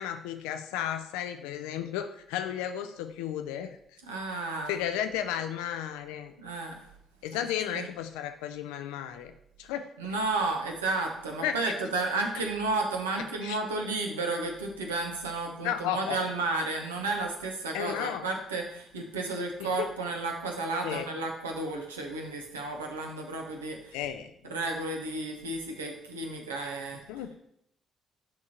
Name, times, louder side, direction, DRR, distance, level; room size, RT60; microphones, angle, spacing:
voice 1, 0.0-3.8 4.7-6.4 7.2-9.3 9.6-10.1 11.4-11.5 13.4-13.6 15.6-16.2 17.7-18.2 19.6-19.9 20.8-21.1 23.9-24.6 27.1-27.4, left 10 dB, 65° left, 8 dB, 0.5 m, -33 dB
voice 2, 4.1-4.8 6.4-6.9 7.3-7.4 7.7-7.9 10.0-24.0 24.5-27.0, right 3 dB, 75° right, 2 dB, 0.9 m, -32 dB
10.5 x 3.6 x 2.9 m, 0.74 s
figure-of-eight pair, 45°, 0 cm